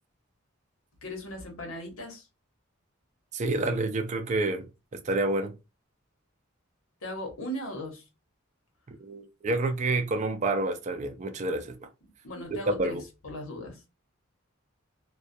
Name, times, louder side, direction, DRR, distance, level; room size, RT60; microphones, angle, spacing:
voice 1, 1.0-2.3 7.0-8.1 12.2-13.9, equal, 85° left, 0.9 m, -38 dB
voice 2, 3.3-4.7 4.9-5.5 8.9-11.9 12.8-13.0, right 2 dB, 35° right, 0.4 m, -29 dB
2.3 x 2.1 x 2.6 m
head